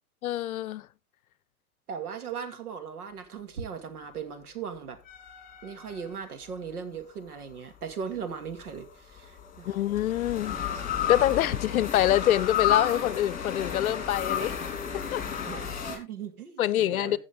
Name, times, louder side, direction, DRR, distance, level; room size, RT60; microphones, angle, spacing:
voice 1, 0.2-0.9 9.7-10.6 11.1-14.6 14.9-15.2 16.6-17.2, left 12 dB, 70° left, 0.7 m, -25 dB
voice 2, 1.9-5.0 5.6-9.7 15.5-17.2, right 6 dB, 80° right, 2.4 m, -38 dB
sound 1, 5.1-6.6 8.4-16.0, left 8 dB, 20° left, 3.5 m, -32 dB
15.0 x 7.2 x 3.7 m
hypercardioid pair, 115°, 44 cm